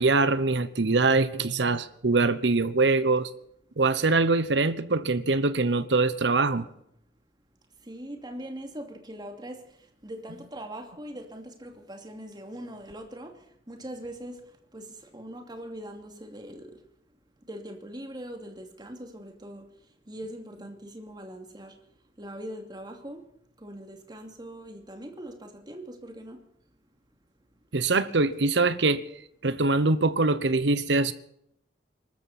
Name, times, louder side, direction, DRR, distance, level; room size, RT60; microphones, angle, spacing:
voice 1, 0.0-3.3 3.8-6.7 27.7-29.0 29.4-31.1, right 3 dB, 75° right, 1.0 m, -23 dB
voice 2, 7.9-9.6 10.0-13.3 13.7-14.4 14.7-14.9 15.1-16.8 17.5-19.7 20.1-21.7 22.2-23.2 23.6-26.4, right 1 dB, 25° right, 2.6 m, -41 dB
24.0 x 13.5 x 4.3 m
head